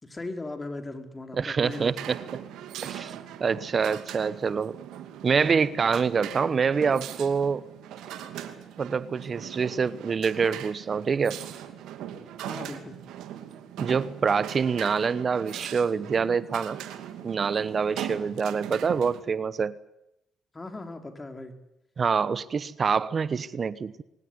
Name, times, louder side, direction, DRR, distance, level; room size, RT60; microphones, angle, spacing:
voice 1, 0.0-1.9 12.4-13.0 20.5-21.5, left 2 dB, 25° left, 6 dB, 4.7 m, -38 dB
voice 2, 1.3-2.2 2.8-3.1 3.4-4.8 5.2-7.6 8.8-11.4 13.8-16.8 17.2-19.7 22.0-24.0, right 5 dB, 50° right, 17 dB, 1.0 m, -26 dB
sound 1, 1.7-19.2, right 10 dB, 80° right, 2.5 m, -40 dB
23.0 x 19.0 x 9.7 m, 0.85 s
supercardioid pair, 55°, 0 cm